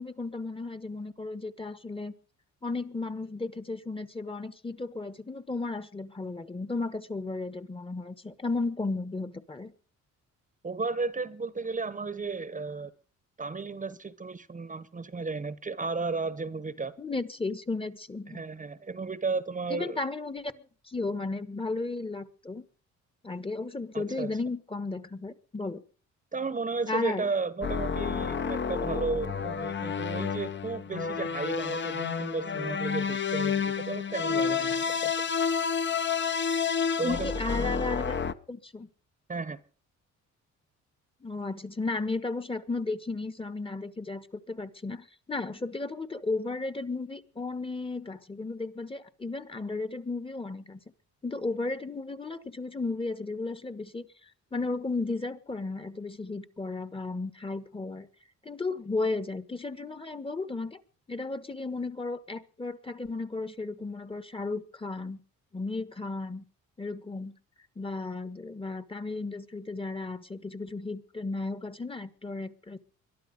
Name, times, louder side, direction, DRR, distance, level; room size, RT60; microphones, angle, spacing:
voice 1, 0.0-2.1 2.6-9.7 17.0-18.4 19.7-22.6 23.2-25.8 26.9-27.3 37.0-38.1 38.5-38.9 41.2-50.8 51.2-54.1 54.5-58.1 58.4-60.8 61.1-65.2 65.5-66.4 66.8-67.3 67.8-72.8, left 3 dB, 20° left, 1.3 m, -34 dB
voice 2, 10.6-12.9 13.4-16.9 18.3-20.0 23.9-24.3 26.3-35.2 37.0-37.3 39.3-39.6, right 4 dB, 25° right, 1.1 m, -34 dB
sound 1, 27.6-38.3, left 6 dB, 40° left, 1.0 m, -30 dB
22.0 x 11.5 x 5.2 m
cardioid pair, 90°, 30 cm